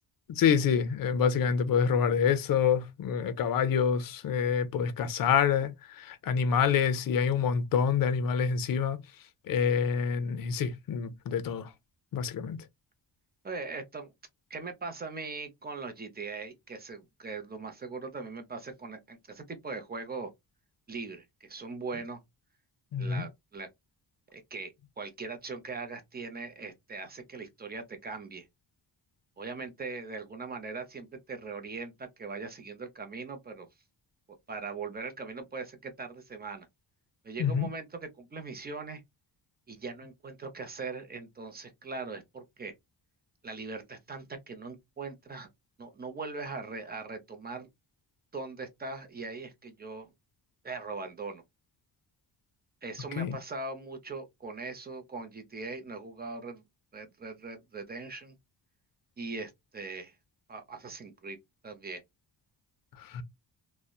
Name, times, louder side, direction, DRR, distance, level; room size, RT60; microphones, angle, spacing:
voice 1, 0.3-9.0 9.5-11.7 12.1-12.6 22.9-23.2 37.4-37.7 53.2-53.4 63.1-63.2, left 7 dB, 50° left, 0.5 m, -27 dB
voice 2, 13.4-14.1 14.5-20.3 20.9-22.2 23.0-23.7 24.3-28.5 29.4-33.7 34.5-36.7 37.2-39.0 39.7-42.7 43.4-45.5 45.8-47.7 48.3-50.1 50.6-51.4 52.8-56.6 56.9-58.4 59.2-60.1 60.5-61.4 61.6-62.0, right 4 dB, 20° right, 0.6 m, -40 dB
2.7 x 2.1 x 2.2 m
wide cardioid pair, 120°, 43 cm